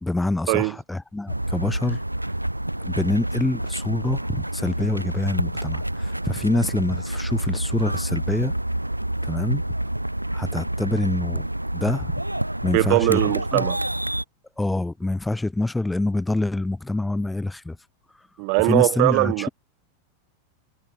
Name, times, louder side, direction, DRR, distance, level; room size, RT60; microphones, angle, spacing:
voice 1, 0.0-2.0 2.8-8.5 9.2-9.6 10.3-12.1 12.6-13.2 13.5-13.6 14.6-17.8 18.6-19.5, left 2 dB, 5° left, 0.7 m, -26 dB
sound 1, 1.3-14.2, right 1 dB, 85° right, 0.7 m, -28 dB
voice 2, 12.7-13.8 18.4-19.5, right 40 dB or more, 45° right, 1.0 m, -21 dB
figure-of-eight pair, 90°, 0 cm